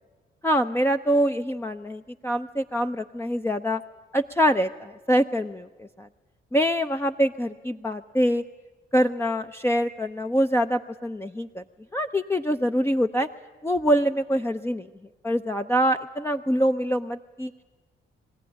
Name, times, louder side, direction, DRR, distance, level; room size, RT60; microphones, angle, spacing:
voice 1, 0.4-3.8 4.1-6.1 6.5-8.4 8.9-11.6 11.9-13.3 13.6-14.9 15.2-17.5, equal, 10° left, 6 dB, 0.7 m, -24 dB
22.5 x 16.0 x 9.9 m, 1.3 s
cardioid pair, 60°, 21 cm